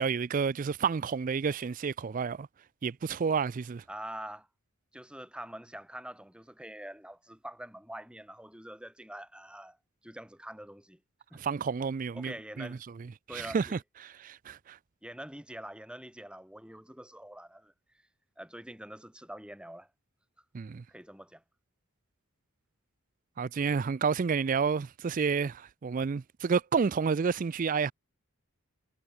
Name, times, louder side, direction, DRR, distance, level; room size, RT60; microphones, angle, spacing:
voice 1, 0.0-2.5 2.8-3.8 11.3-12.8 13.3-14.8 20.5-20.8 23.4-27.9, right 5 dB, 35° right, 0.3 m, -30 dB
voice 2, 3.9-4.5 4.9-9.8 10.0-11.0 11.3-11.4 12.1-12.8 13.3-13.8 15.0-17.7 18.4-19.9 20.9-21.4, right 1 dB, 5° right, 2.6 m, -45 dB
head